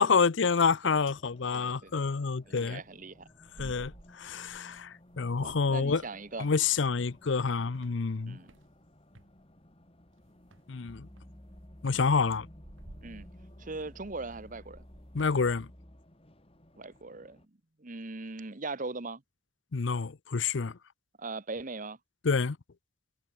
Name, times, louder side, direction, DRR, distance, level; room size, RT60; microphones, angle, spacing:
voice 1, 0.0-2.8 3.6-6.0 6.4-8.4 10.7-11.1 11.8-12.5 15.1-15.7 19.7-20.8 22.2-22.6, left 5 dB, 65° left, 0.6 m, -28 dB
Race car auto racing, 0.9-17.5, left 1 dB, 30° left, 2.5 m, -59 dB
voice 2, 1.5-2.0 2.5-3.3 3.6-3.7 5.4-6.5 8.3-8.5 13.0-13.3 13.6-14.8 16.8-17.4 17.8-19.2 21.2-22.0, right 3 dB, 40° right, 1.2 m, -40 dB
sound 1, 2.8-4.8 5.1-7.4 7.7-9.3 10.4-10.8 11.2-15.4, right 1 dB, 80° right, 2.2 m, -54 dB
sound 2, 10.9-16.2, equal, 10° left, 2.0 m, -52 dB
head